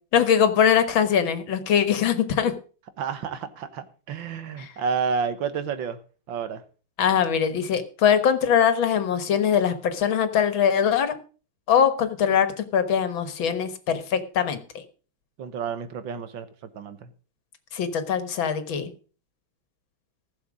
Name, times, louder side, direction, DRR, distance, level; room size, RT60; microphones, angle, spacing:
voice 1, 0.1-2.5 4.6-4.7 7.0-11.1 11.7-14.6 17.7-18.9, left 8 dB, 80° left, 11 dB, 2.2 m, -22 dB
voice 2, 3.0-6.0 6.3-6.6 15.4-16.5 16.7-17.1, right 6 dB, 75° right, 12 dB, 1.9 m, -30 dB
15.5 x 7.1 x 6.1 m, 0.38 s
omnidirectional pair, 2.1 m